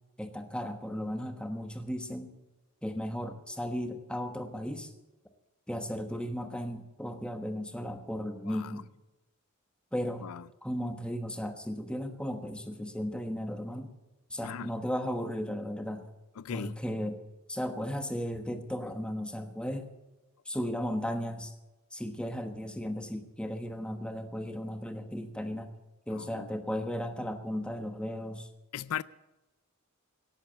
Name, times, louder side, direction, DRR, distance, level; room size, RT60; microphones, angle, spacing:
voice 1, 0.2-2.3 2.8-4.9 5.7-8.9 9.9-10.3 10.6-13.9 14.3-16.1 16.5-17.2 17.5-19.9 20.4-21.5 21.9-25.7 26.1-28.5, equal, 5° left, 1.2 m, -35 dB
voice 2, 14.4-14.7 16.4-16.7 26.1-26.5 28.7-29.0, left 8 dB, 75° left, 0.4 m, -38 dB
17.5 x 8.3 x 8.0 m
head